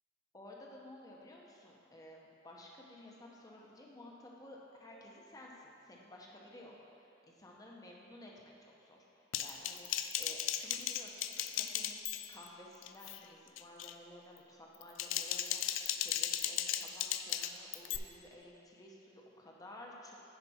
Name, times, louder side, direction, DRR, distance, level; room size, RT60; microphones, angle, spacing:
voice 1, 0.3-20.2, left 1 dB, 20° left, -2 dB, 0.9 m, -54 dB
Typing, 9.3-12.5 12.8-13.2 13.6-13.9 14.7-18.0, left 11 dB, 80° left, 0.4 m, -36 dB
9.9 x 5.2 x 4.3 m, 2.7 s
head